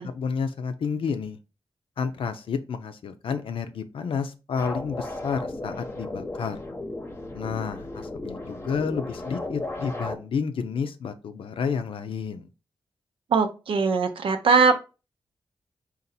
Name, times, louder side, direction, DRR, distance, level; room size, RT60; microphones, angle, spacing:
voice 1, 0.0-1.4 2.0-6.6 7.3-12.5, left 6 dB, 80° left, 9 dB, 0.5 m, -30 dB
sound 1, 4.6-10.2, left 2 dB, 25° left, 0.8 m, -35 dB
voice 2, 13.3-14.7, right 5 dB, 75° right, 7 dB, 0.6 m, -21 dB
4.0 x 2.5 x 4.0 m, 0.31 s
cardioid pair, 85°, 9 cm